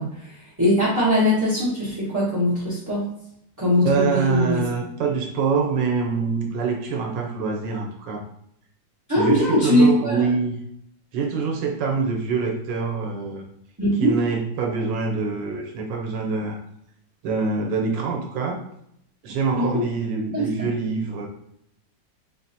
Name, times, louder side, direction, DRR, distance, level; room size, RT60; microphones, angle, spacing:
voice 1, 0.0-3.1 3.6-4.6 9.1-10.3 13.8-14.1 19.5-19.8 20.3-20.4, left 1 dB, 15° right, -11 dB, 0.9 m, -21 dB
voice 2, 3.8-8.2 9.2-10.5 11.1-13.4 14.0-16.6 17.2-18.6 19.2-21.3, right 4 dB, 90° right, 1 dB, 1.4 m, -25 dB
4.1 x 2.6 x 2.8 m, 0.73 s
omnidirectional pair, 1.9 m